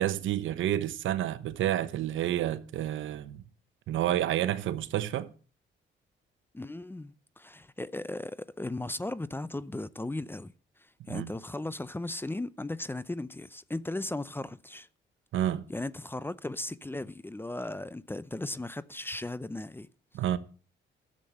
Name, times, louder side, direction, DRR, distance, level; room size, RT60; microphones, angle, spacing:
voice 1, 0.0-3.4 3.9-5.3 11.1-11.3 15.3-15.7 20.1-20.4, right 12 dB, 80° right, 1.0 m, -29 dB
voice 2, 6.5-10.5 11.1-14.9 15.7-19.9, left 2 dB, 10° left, 0.6 m, -36 dB
12.5 x 7.6 x 7.6 m
cardioid pair, 90°, 20 cm